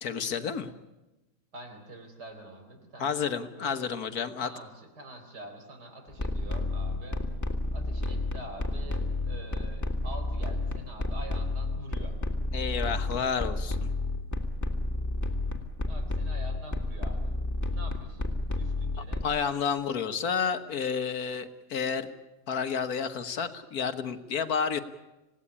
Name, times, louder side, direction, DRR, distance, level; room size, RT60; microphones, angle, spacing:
voice 1, 0.0-0.7 3.0-4.5 12.5-13.9 19.2-22.1 22.5-24.8, left 6 dB, 65° left, 10 dB, 1.7 m, -30 dB
voice 2, 1.5-3.2 3.5-3.9 4.4-7.2 7.7-12.2 15.8-17.4 17.7-19.6, right 2 dB, 80° right, 5 dB, 4.7 m, -46 dB
sound 1, 6.1-19.2, left 2 dB, 10° left, 1.9 m, -31 dB
26.5 x 17.5 x 9.9 m, 1.0 s
omnidirectional pair, 1.8 m